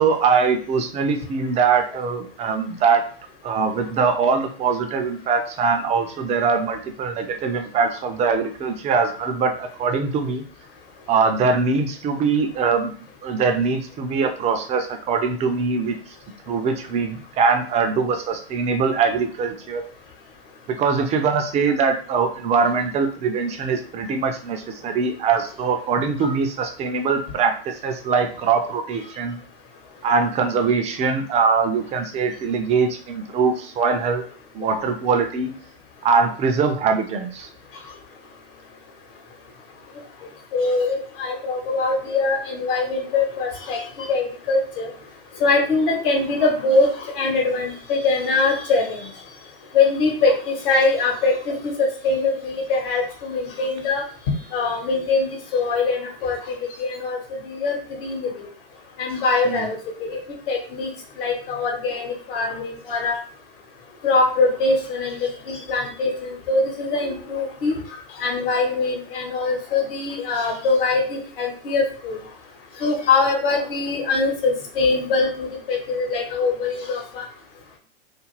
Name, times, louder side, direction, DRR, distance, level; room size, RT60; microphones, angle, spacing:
voice 1, 0.0-3.0 3.4-10.5 11.1-12.9 13.2-15.9 16.5-19.8 20.8-29.4 30.0-34.2 34.5-35.5 36.0-37.5 59.5-59.7, right 5 dB, 20° right, 5 dB, 0.4 m, -22 dB
voice 2, 40.5-44.9 45.4-46.9 47.2-49.1 49.7-54.0 54.5-56.4 56.8-57.2 57.4-58.5 59.0-60.2 60.5-60.9 61.2-63.2 64.0-67.8 68.2-72.2 72.8-77.2, left 3 dB, 60° left, 2 dB, 1.1 m, -22 dB
2.4 x 2.4 x 3.0 m, 0.42 s
figure-of-eight pair, 95°, 31 cm